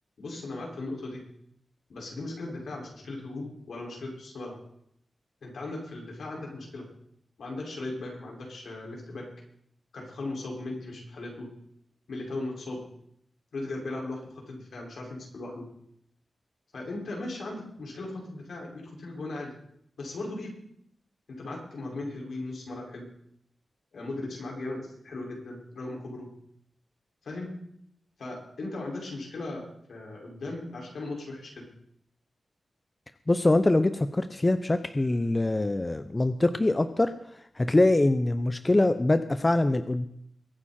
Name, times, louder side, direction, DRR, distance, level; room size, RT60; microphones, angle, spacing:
voice 1, 0.2-1.2 1.9-4.6 5.4-6.9 7.4-9.3 9.9-11.5 12.1-12.8 13.5-15.6 16.7-19.5 20.0-20.5 21.3-23.1 23.9-26.3 27.2-27.5 28.2-31.6, left 2 dB, 80° left, -2 dB, 5.5 m, -37 dB
voice 2, 33.3-37.1 37.6-40.1, left 2 dB, 25° left, 10 dB, 0.8 m, -24 dB
23.0 x 9.6 x 4.4 m, 0.72 s
cardioid pair, 75°, 0 cm